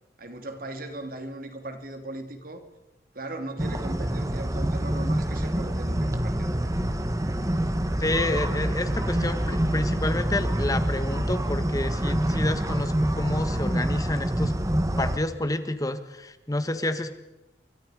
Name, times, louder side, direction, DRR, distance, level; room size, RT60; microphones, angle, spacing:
voice 1, 0.2-2.7 3.1-6.7, right 2 dB, 55° right, 6 dB, 2.6 m, -38 dB
sound 1, 3.6-15.2, right 1 dB, 20° right, 1.3 m, -26 dB
voice 2, 8.0-14.5 15.0-17.1, left 1 dB, 20° left, 10 dB, 1.4 m, -29 dB
29.5 x 24.0 x 4.9 m, 0.99 s
head